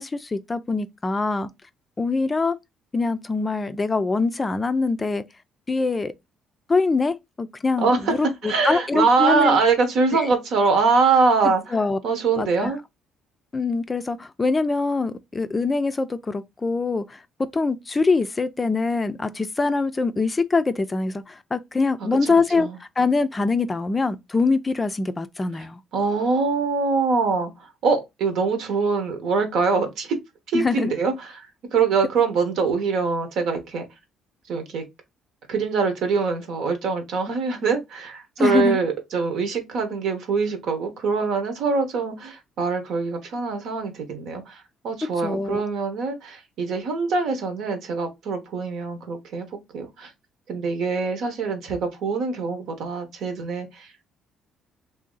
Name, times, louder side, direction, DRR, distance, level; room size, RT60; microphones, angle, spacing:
voice 1, 0.0-1.5 2.0-2.6 2.9-5.2 5.7-6.1 6.7-9.6 10.1-10.3 11.4-12.0 12.4-12.7 13.5-17.2 17.5-22.7 23.0-25.8 30.5-30.9 38.4-38.8 45.2-45.6, left 3 dB, 25° left, 0.4 m, -24 dB
voice 2, 7.8-8.1 8.4-11.8 12.0-12.8 22.2-22.8 25.9-30.2 30.5-33.8 34.5-34.8 35.5-49.5 49.7-50.1 50.5-54.1, right 4 dB, 75° right, 1.0 m, -23 dB
2.8 x 2.7 x 3.8 m
cardioid pair, 90°, 0 cm